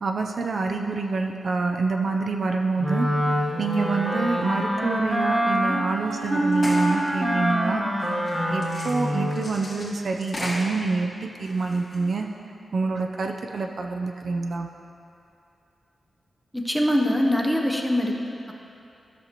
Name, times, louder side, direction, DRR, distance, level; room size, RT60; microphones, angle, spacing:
voice 1, 0.0-3.1 3.6-7.9 8.5-12.3 12.7-14.7, right 3 dB, 50° right, 3 dB, 0.5 m, -26 dB
Wind instrument woodwind instrument, 2.8-9.5, equal, 20° right, 1.1 m, -25 dB
sound 1, 6.1-6.3 6.5-7.0 8.0-10.9 11.4-12.1, left 1 dB, 35° left, 1.7 m, -36 dB
voice 2, 16.5-18.5, left 1 dB, ahead, 0 dB, 0.7 m, -23 dB
13.0 x 6.5 x 2.9 m, 2.7 s
wide cardioid pair, 160°, 0 cm